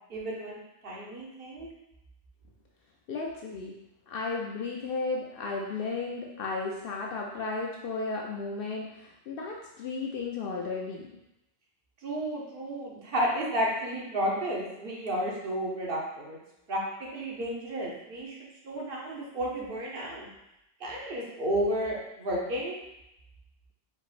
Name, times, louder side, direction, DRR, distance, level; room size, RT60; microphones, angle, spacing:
voice 1, 0.1-1.7 12.0-16.4 16.7-18.4 18.6-20.3 20.8-22.7, equal, 65° right, -3 dB, 1.2 m, -32 dB
voice 2, 3.1-3.7 4.1-11.1, left 3 dB, 70° left, -1 dB, 0.7 m, -34 dB
4.9 x 3.6 x 2.5 m, 0.89 s
omnidirectional pair, 1.0 m